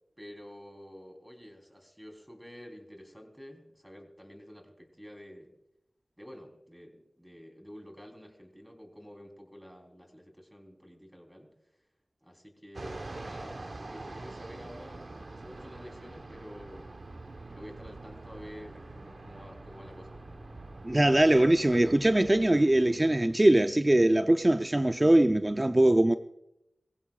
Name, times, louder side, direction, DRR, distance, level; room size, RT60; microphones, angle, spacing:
voice 1, 0.2-5.5 6.2-11.5 12.2-16.9 17.5-20.5, equal, 5° right, 3.7 m, -49 dB
Fixed-wing aircraft airplane, 12.7-23.6, right 2 dB, 55° right, 1.1 m, -45 dB
voice 2, 20.8-26.2, right 1 dB, 25° right, 0.5 m, -22 dB
23.5 x 15.5 x 2.4 m
cardioid pair, 45°, 0 cm